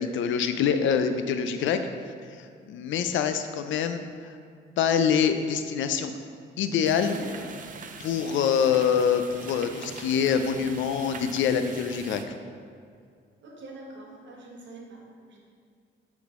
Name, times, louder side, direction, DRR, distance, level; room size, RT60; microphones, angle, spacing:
voice 1, 0.0-1.8 2.4-4.4 4.8-6.1 6.6-7.2 8.0-12.2, left 7 dB, 75° left, 8 dB, 0.5 m, -25 dB
sound 1, 6.8-12.2, right 5 dB, 40° right, 0.5 m, -42 dB
voice 2, 7.1-7.5 13.4-15.4, right 2 dB, 65° right, -1 dB, 1.4 m, -44 dB
8.7 x 3.8 x 3.7 m, 2.3 s
cardioid pair, 90°, 20 cm